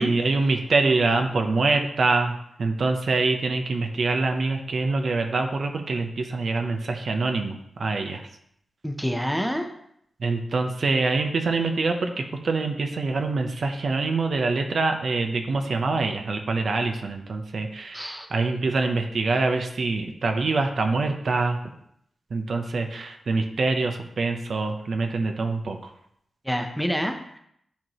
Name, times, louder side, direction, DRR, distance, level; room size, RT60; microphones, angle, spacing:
voice 1, 0.0-8.2 10.2-21.6 22.3-25.8, right 3 dB, 60° right, 5 dB, 0.8 m, -25 dB
voice 2, 8.8-9.7 17.9-18.3 26.4-27.4, equal, ahead, 4 dB, 0.8 m, -27 dB
10.5 x 4.6 x 3.0 m, 0.72 s
wide cardioid pair, 110°, 0 cm